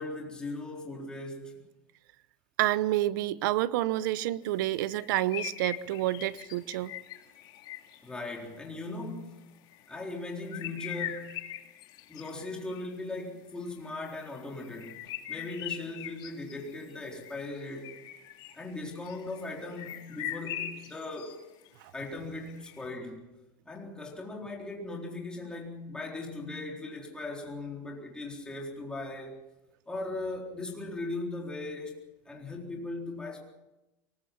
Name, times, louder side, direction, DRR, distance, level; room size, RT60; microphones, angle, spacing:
voice 1, 0.0-1.6 8.0-9.4 9.9-11.4 12.1-15.0 15.3-18.0 18.6-21.4 21.9-23.2 23.7-29.4 29.9-32.0 32.3-33.4, left 2 dB, 10° left, 4.0 m, -38 dB
voice 2, 2.6-6.9 21.8-21.9, right 15 dB, 70° right, 0.9 m, -29 dB
sound 1, 4.9-8.1 9.7-9.9 10.3-12.9 13.7-21.4 21.6-21.7 22.5-22.9, left 12 dB, 45° left, 2.5 m, -42 dB
23.5 x 20.0 x 5.9 m
supercardioid pair, 150°, 11 cm